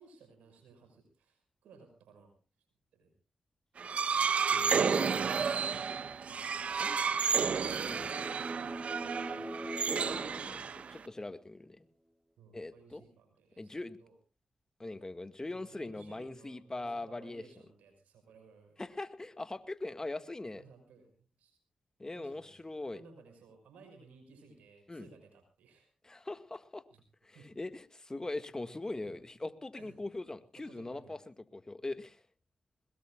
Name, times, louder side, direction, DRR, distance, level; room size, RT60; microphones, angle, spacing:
voice 1, 0.0-2.3 2.9-3.1 7.1-8.8 9.0-9.8 12.4-14.1 15.5-18.8 20.6-21.6 22.1-25.9 26.9-27.0 27.3-27.5 29.0-29.2 29.7-30.0 30.6-31.2, right 4 dB, 90° right, 7 dB, 5.6 m, -59 dB
sound 1, 3.8-11.1, right 6 dB, 65° right, 0.9 m, -31 dB
voice 2, 4.5-5.6 6.7-7.0 7.7-8.1 9.9-11.9 12.5-13.0 13.6-14.0 14.8-17.4 18.8-20.6 22.0-23.0 24.9-25.1 26.0-26.8 27.2-32.2, left 2 dB, 25° left, 11 dB, 1.9 m, -41 dB
sound 2, 7.5-11.3, equal, 30° right, 3.7 m, -44 dB
22.0 x 21.0 x 2.4 m, 0.34 s
supercardioid pair, 45°, 2 cm